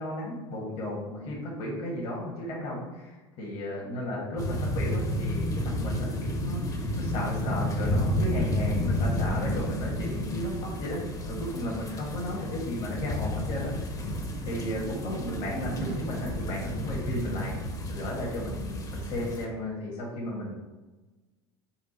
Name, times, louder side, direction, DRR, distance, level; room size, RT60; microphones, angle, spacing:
voice 1, 0.0-13.7 14.4-17.5 17.9-20.6, left 1 dB, 55° left, -3 dB, 1.3 m, -34 dB
sound 1, 4.4-19.4, left 1 dB, 25° left, 0.8 m, -31 dB
sound 2, 10.2-16.0, right 7 dB, 35° right, 0.4 m, -44 dB
4.4 x 2.4 x 4.3 m, 1.2 s
hypercardioid pair, 80°, 14 cm